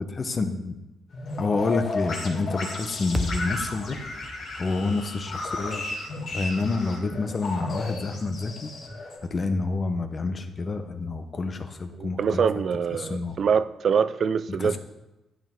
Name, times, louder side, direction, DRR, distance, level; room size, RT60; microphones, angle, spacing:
voice 1, 0.2-0.8 1.4-4.0 4.6-5.8 6.3-8.7 9.2-12.4 13.0-13.4 14.6-14.8, left 3 dB, 35° left, 0.9 m, -28 dB
sound 1, 1.1-9.2, left 2 dB, 60° left, 2.6 m, -34 dB
sound 2, 3.1-7.4, equal, ahead, 0.9 m, -36 dB
voice 2, 12.0-14.8, right 6 dB, 55° right, 0.4 m, -24 dB
12.0 x 5.2 x 3.8 m
cardioid pair, 90°, 0 cm